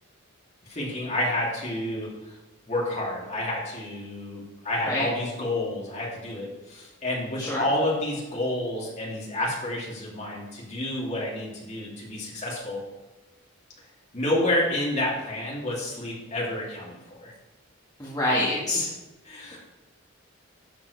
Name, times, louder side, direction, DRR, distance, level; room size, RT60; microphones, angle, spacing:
voice 1, 0.6-2.4 2.7-12.8 14.1-17.3 19.2-19.6, left 1 dB, 35° left, -5 dB, 2.8 m, -29 dB
voice 2, 18.0-18.9, left 1 dB, 20° left, -8 dB, 1.7 m, -26 dB
12.0 x 7.5 x 3.3 m, 1.1 s
head